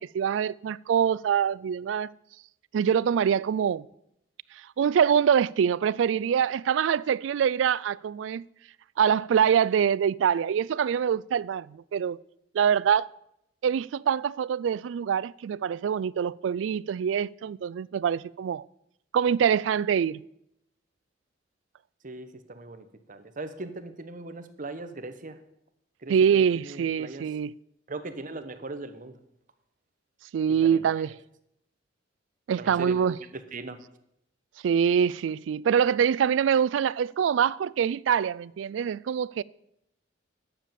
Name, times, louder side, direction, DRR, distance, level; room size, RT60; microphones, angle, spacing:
voice 1, 0.0-2.1 2.7-3.9 4.8-8.4 9.0-12.2 12.5-13.1 13.6-18.6 19.1-20.2 26.1-27.5 30.3-31.1 32.5-33.2 34.6-39.4, right 8 dB, 75° right, 0.3 m, -24 dB
voice 2, 22.0-25.4 26.0-27.2 27.9-29.1 30.6-31.1 32.6-33.8, right 2 dB, 45° right, 1.0 m, -39 dB
10.0 x 7.4 x 6.8 m
head